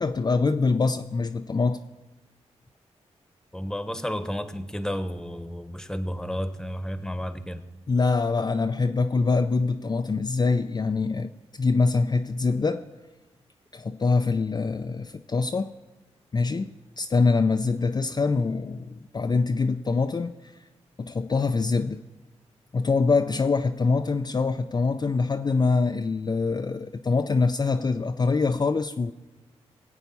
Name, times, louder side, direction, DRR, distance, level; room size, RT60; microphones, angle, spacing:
voice 1, 0.0-1.8 7.9-11.3 11.6-12.9 13.7-15.7 16.3-20.5 21.0-22.0 22.7-29.1, left 4 dB, 35° left, 0.5 m, -24 dB
voice 2, 3.5-7.6, equal, 5° left, 1.2 m, -32 dB
18.5 x 8.1 x 5.5 m
cardioid pair, 50°, 12 cm